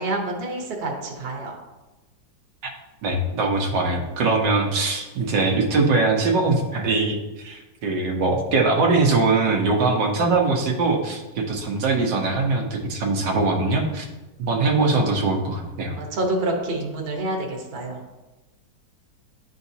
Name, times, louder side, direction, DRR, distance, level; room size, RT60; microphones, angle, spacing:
voice 1, 0.0-1.5 14.8-15.1 16.0-18.0, right 2 dB, 40° right, 0 dB, 1.1 m, -28 dB
voice 2, 3.0-14.1 14.4-16.0, right 3 dB, 75° right, 1 dB, 1.5 m, -22 dB
11.0 x 3.9 x 2.7 m, 1.1 s
omnidirectional pair, 1.9 m